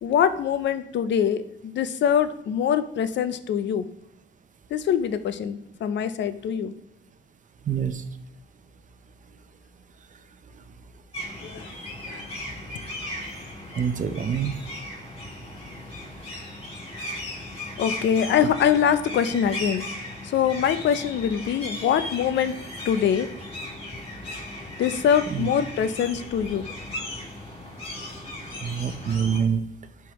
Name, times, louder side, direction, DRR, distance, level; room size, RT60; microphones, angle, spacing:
voice 1, 0.0-3.9 4.7-6.7 11.4-11.7 12.1-12.3 17.8-22.6 22.8-23.3 24.8-26.7, left 8 dB, 65° left, 12 dB, 0.5 m, -24 dB
voice 2, 7.7-8.0 13.7-14.5 25.3-25.5 28.6-29.6, right 7 dB, 40° right, 11 dB, 0.6 m, -25 dB
sound 1, 11.1-29.4, left 1 dB, 30° left, 2.3 m, -37 dB
10.5 x 3.6 x 3.0 m, 0.79 s
cardioid pair, 90°, 20 cm